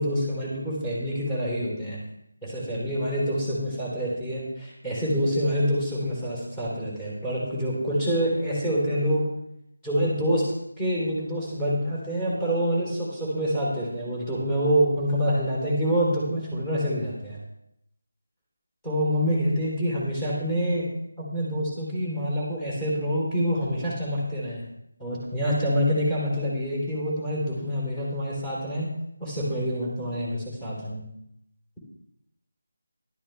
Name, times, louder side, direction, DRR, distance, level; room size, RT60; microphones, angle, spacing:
voice 1, 0.0-2.0 2.4-9.3 9.8-10.5 10.8-17.4 18.8-20.9 21.2-24.6 25.0-28.9 29.2-31.0, equal, 10° left, -6 dB, 3.7 m, -26 dB
13.0 x 12.0 x 3.5 m, 0.78 s
figure-of-eight pair, 165°, 0 cm